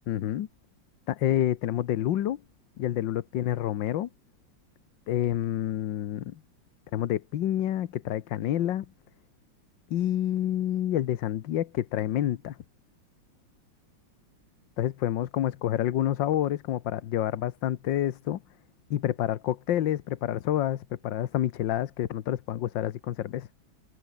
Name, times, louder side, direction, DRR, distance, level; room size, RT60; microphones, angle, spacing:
voice 1, 0.1-0.5 1.1-2.4 2.8-4.1 5.1-6.4 6.9-8.8 9.9-12.6 14.8-18.4 18.9-23.5, left 12 dB, 75° left, 1.6 m, -28 dB
open air
omnidirectional pair, 2.1 m